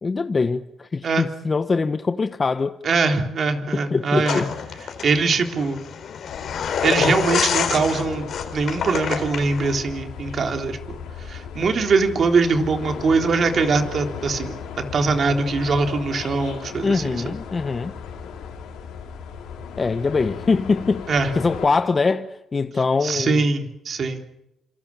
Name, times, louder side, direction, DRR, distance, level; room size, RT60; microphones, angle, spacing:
voice 1, 0.0-2.8 3.7-4.5 16.8-17.9 19.8-21.1 21.3-23.4, left 4 dB, 30° left, 1.1 m, -23 dB
voice 2, 2.8-4.4 5.0-5.8 6.8-11.0 11.3-14.6 14.9-17.2 21.1-21.3 23.0-24.2, right 4 dB, 50° right, 3.6 m, -22 dB
sound 1, 4.2-9.8, left 7 dB, 60° left, 4.0 m, -27 dB
sound 2, 6.3-21.7, left 7 dB, 85° left, 5.3 m, -36 dB
28.0 x 27.0 x 7.3 m
cardioid pair, 90°, 0 cm